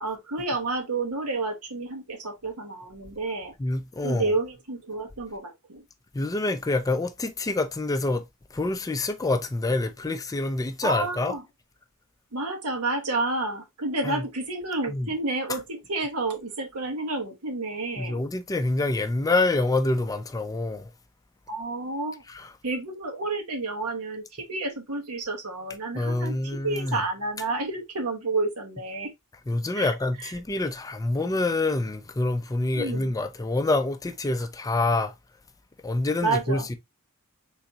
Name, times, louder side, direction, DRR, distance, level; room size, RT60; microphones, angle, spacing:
voice 1, 0.0-3.5 4.0-5.8 10.8-11.4 12.3-18.2 21.5-22.2 22.6-29.1 29.7-30.3 32.7-33.1 36.2-36.7, right 3 dB, 85° right, 1.2 m, -30 dB
voice 2, 3.6-4.3 6.1-8.2 8.5-11.3 14.0-14.2 14.9-15.1 18.0-20.9 22.3-22.5 25.9-27.0 29.5-35.1 35.8-36.7, left 2 dB, 15° left, 0.4 m, -26 dB
3.8 x 3.5 x 2.8 m
head